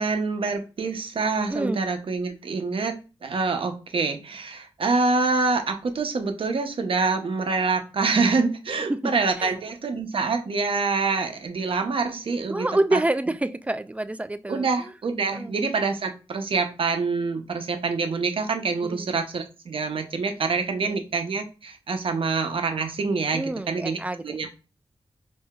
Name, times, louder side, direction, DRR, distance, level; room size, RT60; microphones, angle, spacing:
voice 1, 0.0-2.9 3.2-12.7 12.9-13.0 14.5-24.5, right 4 dB, 60° right, 0.7 m, -26 dB
voice 2, 1.5-1.9 8.9-9.1 9.4-9.5 12.5-14.7 15.3-15.5 18.8-19.1 20.8-21.0 23.3-24.5, right 1 dB, 15° right, 0.3 m, -27 dB
4.6 x 2.7 x 2.3 m
cardioid pair, 65°, 10 cm